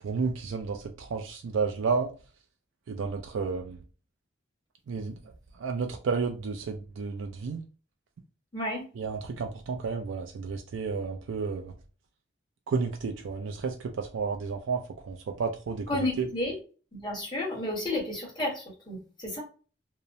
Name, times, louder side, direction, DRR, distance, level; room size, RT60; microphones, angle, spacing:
voice 1, 0.0-2.1 2.9-3.8 4.9-5.2 5.6-7.7 9.0-11.7 12.7-16.3, right 5 dB, 85° right, 0.4 m, -31 dB
voice 2, 8.5-8.9 15.9-16.6 16.9-19.4, left 1 dB, 25° left, 1.1 m, -32 dB
2.8 x 2.0 x 2.5 m
head